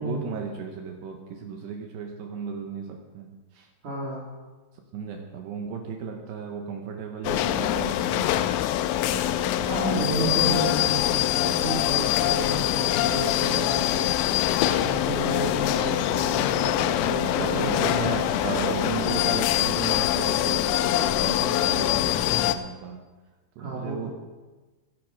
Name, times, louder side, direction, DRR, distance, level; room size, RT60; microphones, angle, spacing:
voice 1, 0.0-3.7 4.9-8.5 9.1-10.8 16.6-16.9 17.2-23.0 23.6-24.1, right 6 dB, 75° right, 3 dB, 2.8 m, -35 dB
voice 2, 3.8-4.3 9.7-14.1 14.7-18.1 23.6-24.1, right 2 dB, 50° right, -4 dB, 3.2 m, -32 dB
sound 1, 7.2-22.6, left 13 dB, 90° left, 3.3 m, -24 dB
22.0 x 9.5 x 4.9 m, 1.2 s
omnidirectional pair, 5.9 m